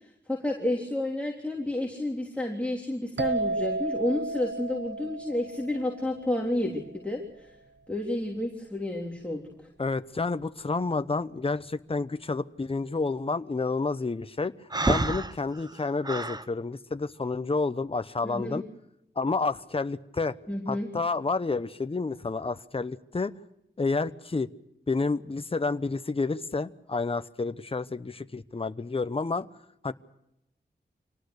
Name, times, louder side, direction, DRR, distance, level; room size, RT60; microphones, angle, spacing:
voice 1, 0.3-7.5 7.9-9.4 18.2-18.6 20.5-20.9, left 1 dB, 5° left, -1 dB, 3.5 m, -30 dB
sound 1, 3.2-6.8, right 3 dB, 75° right, 1.4 m, -33 dB
voice 2, 9.8-14.5 14.9-18.6 19.2-20.4 20.7-23.3 23.8-24.5 24.9-29.5 29.8-29.9, left 3 dB, 30° left, 11 dB, 1.0 m, -29 dB
Breathing, 14.7-16.5, right 2 dB, 20° right, 1.0 m, -28 dB
26.0 x 19.0 x 6.5 m, 0.84 s
wide cardioid pair, 75°, 18 cm